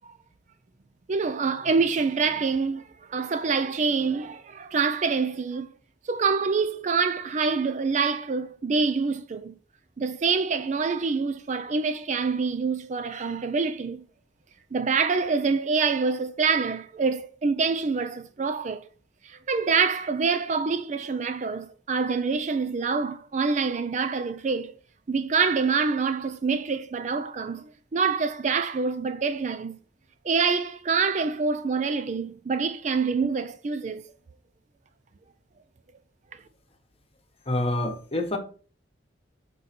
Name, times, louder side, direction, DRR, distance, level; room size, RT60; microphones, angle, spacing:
voice 1, 1.1-2.8 3.1-5.7 6.1-9.5 10.0-14.0 14.7-18.8 19.2-24.7 25.1-29.8 30.2-34.0, right 5 dB, 40° right, 0.4 m, -26 dB
voice 2, 37.5-38.4, left 1 dB, 30° left, 1.1 m, -27 dB
5.6 x 3.8 x 5.8 m
head